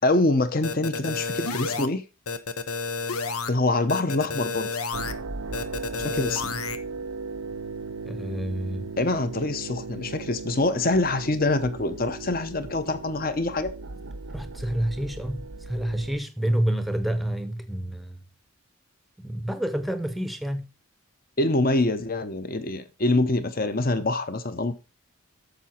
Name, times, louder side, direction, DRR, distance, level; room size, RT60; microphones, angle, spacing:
voice 1, 0.0-2.0 3.5-4.7 6.0-6.6 9.0-13.7 21.4-24.7, left 2 dB, 40° left, 0.9 m, -25 dB
sound 1, 0.6-1.9 2.3-3.5 3.9-5.1 5.5-6.8, left 4 dB, 85° left, 0.8 m, -30 dB
sound 2, 4.9-16.2, right 4 dB, 90° right, 0.8 m, -37 dB
voice 2, 8.0-8.9 14.3-18.1 19.2-20.7, right 1 dB, ahead, 0.7 m, -28 dB
9.0 x 6.8 x 4.4 m
head